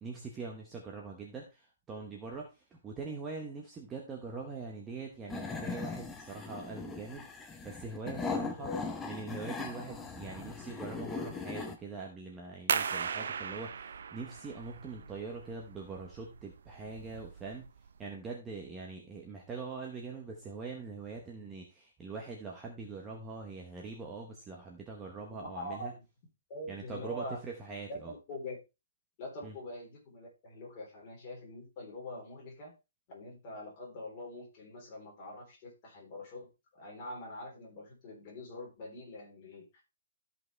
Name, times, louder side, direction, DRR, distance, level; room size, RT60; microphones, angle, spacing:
voice 1, 0.0-8.7 9.0-17.6 18.0-25.9 26.7-28.1 29.4-29.6, right 4 dB, 10° right, -1 dB, 0.9 m, -43 dB
sound 1, 5.3-11.8, left 4 dB, 5° left, 0.6 m, -39 dB
sound 2, 12.7-18.0, right 6 dB, 60° right, 0.6 m, -37 dB
voice 2, 25.1-26.0 26.5-27.4 27.9-28.6 29.2-32.7 33.1-36.5 36.7-39.8, left 1 dB, 25° left, -3 dB, 3.7 m, -44 dB
13.5 x 5.4 x 3.3 m, 0.27 s
hypercardioid pair, 175°, 0 cm